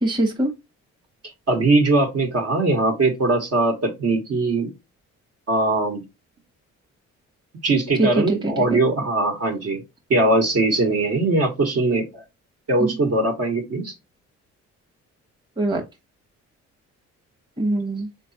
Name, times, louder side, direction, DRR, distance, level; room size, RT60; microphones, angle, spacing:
voice 1, 0.0-0.5 8.0-8.6 12.8-12.9 15.6-15.8 17.6-18.1, right 1 dB, 15° right, 1.0 m, -22 dB
voice 2, 1.5-4.7 5.5-6.0 7.6-9.8 10.1-12.2 12.7-13.9, right 2 dB, 55° right, 1.3 m, -21 dB
4.1 x 3.2 x 2.7 m
cardioid pair, 90°, 30 cm